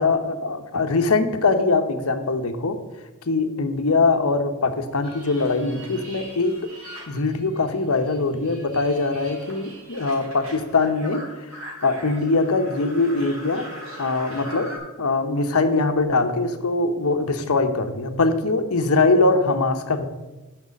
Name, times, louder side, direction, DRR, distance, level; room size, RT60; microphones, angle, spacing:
voice 1, 0.0-2.8 3.3-6.6 7.1-13.7 14.0-14.7 15.0-20.0, left 3 dB, 85° left, 8 dB, 0.9 m, -22 dB
sound 1, 5.0-7.8 8.0-14.8, equal, 70° right, 3.1 m, -41 dB
6.5 x 6.1 x 7.5 m, 1.1 s
head